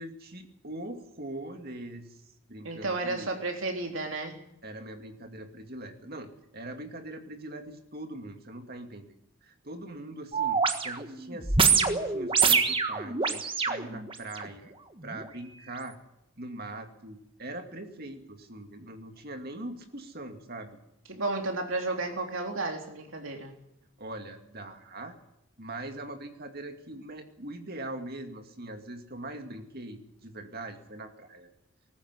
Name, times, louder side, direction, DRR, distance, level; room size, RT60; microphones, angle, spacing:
voice 1, 0.0-2.2 2.5-3.3 4.6-9.1 9.4-14.7 15.0-15.9 16.4-20.7 24.0-25.1 25.6-31.5, right 1 dB, 45° right, 5 dB, 2.5 m, -41 dB
voice 2, 2.6-4.4 21.1-23.5, right 2 dB, 65° right, 3 dB, 3.5 m, -32 dB
sound 1, 10.3-14.5 15.1-15.2, right 5 dB, 25° right, 1.4 m, -26 dB
19.5 x 14.5 x 9.7 m, 0.83 s
head